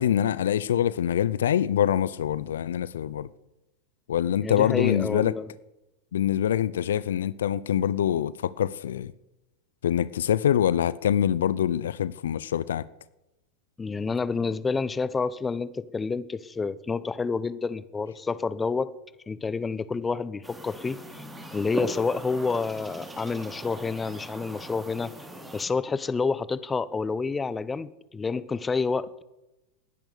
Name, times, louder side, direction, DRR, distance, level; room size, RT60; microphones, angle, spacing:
voice 1, 0.0-3.3 4.1-5.3 6.1-9.1 9.8-12.9, left 10 dB, 75° left, 0.6 m, -25 dB
voice 2, 4.4-5.5 13.8-18.9 19.3-21.2 21.5-25.1 25.5-29.2, left 4 dB, 15° left, 0.9 m, -29 dB
sound 1, 20.4-25.6, right 1 dB, 10° right, 3.0 m, -39 dB
19.5 x 10.5 x 6.8 m
hypercardioid pair, 95°, 0 cm